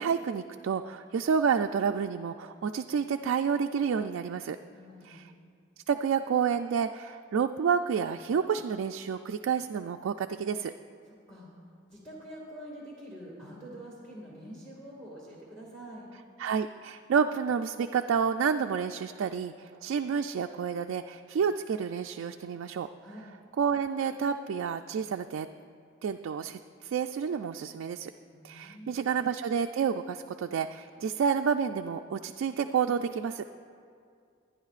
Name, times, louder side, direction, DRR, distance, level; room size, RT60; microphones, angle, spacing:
voice 1, 0.0-4.6 5.0-5.2 5.9-10.7 16.4-22.9 23.6-25.5 26.0-28.1 28.4-33.4, right 6 dB, 80° right, 5 dB, 0.3 m, -29 dB
voice 2, 4.7-5.2 11.3-11.5 11.9-16.1 23.0-23.2 28.3-28.9, equal, 5° left, -6 dB, 1.9 m, -46 dB
23.0 x 9.9 x 2.4 m, 2.3 s
head